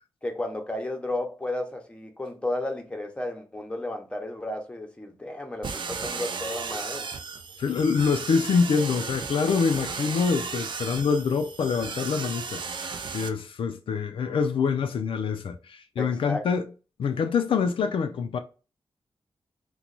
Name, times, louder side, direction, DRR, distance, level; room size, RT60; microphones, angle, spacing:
voice 1, 0.2-7.1 16.0-16.4, left 1 dB, 10° left, 0.7 m, -33 dB
sound 1, 5.6-13.3, right 5 dB, 65° right, 0.4 m, -35 dB
voice 2, 7.6-16.6 17.0-18.4, left 5 dB, 85° left, 0.4 m, -25 dB
3.0 x 2.2 x 3.8 m
wide cardioid pair, 110°, 9 cm